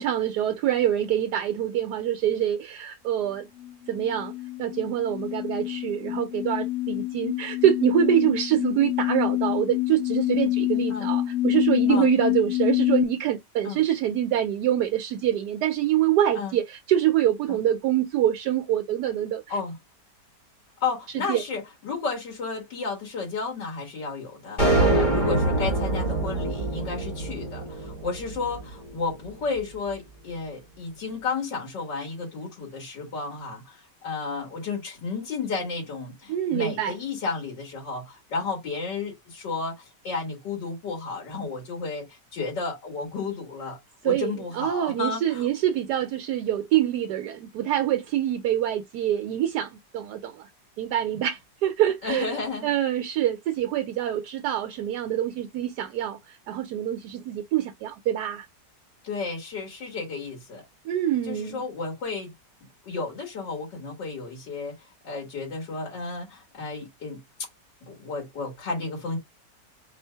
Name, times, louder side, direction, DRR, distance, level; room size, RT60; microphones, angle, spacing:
voice 1, 0.0-3.5 3.9-4.3 4.6-19.6 21.1-21.4 36.3-37.0 44.0-50.5 50.8-52.4 52.6-58.5 60.8-61.6, right 11 dB, 75° right, 1.1 m, -25 dB
sound 1, 3.6-13.0, left 16 dB, 55° left, 0.8 m, -27 dB
voice 2, 20.8-24.6 24.9-43.8 44.0-45.5 52.0-52.7 59.0-60.6 61.2-62.3 62.9-64.7 65.0-67.2 67.8-69.2, left 4 dB, 75° left, 2.6 m, -32 dB
sound 2, 24.6-29.0, right 2 dB, 30° left, 1.5 m, -25 dB
4.4 x 2.6 x 4.5 m
omnidirectional pair, 1.9 m